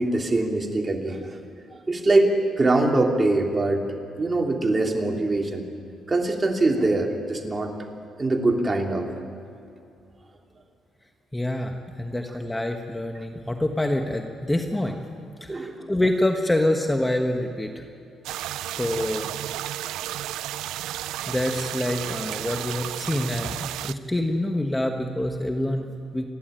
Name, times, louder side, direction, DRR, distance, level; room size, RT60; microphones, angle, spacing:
voice 1, 0.0-1.4 1.7-2.3 2.6-3.8 4.2-5.6 6.1-7.7 8.2-9.1 15.5-15.9 22.5-22.6, right 2 dB, 25° right, 2 dB, 2.8 m, -23 dB
voice 2, 11.3-15.0 15.4-17.8 18.7-19.3 21.3-26.2, left 1 dB, 10° left, 4 dB, 1.3 m, -26 dB
sound 1, 18.2-23.9, right 13 dB, 90° right, 0.4 m, -32 dB
28.5 x 11.0 x 9.1 m, 2.6 s
cardioid pair, 90°, 0 cm